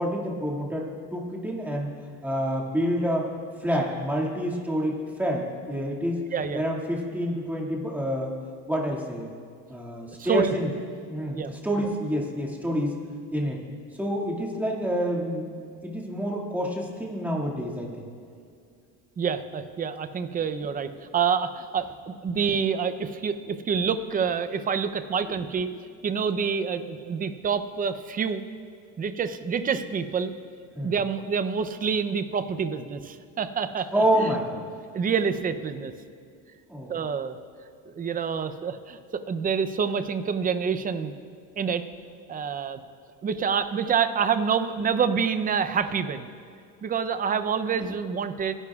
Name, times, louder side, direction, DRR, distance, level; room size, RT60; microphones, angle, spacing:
voice 1, 0.0-1.9 2.2-3.3 3.6-6.2 6.5-8.4 8.7-9.3 9.7-10.7 11.1-12.9 13.3-13.6 13.9-15.5 15.8-18.1 30.7-30.9 33.9-34.6 36.7-37.0, equal, 5° right, -3 dB, 2.1 m, -28 dB
voice 2, 6.3-6.6 10.2-10.6 11.3-11.9 19.2-25.7 26.0-28.4 29.0-30.3 30.8-34.2 34.9-35.9 36.9-37.4 37.9-39.0 39.3-41.1 41.6-41.8 42.3-42.8 43.2-46.3 46.8-48.5, right 6 dB, 25° right, 11 dB, 0.6 m, -27 dB
26.5 x 11.0 x 2.4 m, 2.3 s
cardioid pair, 135°, 34 cm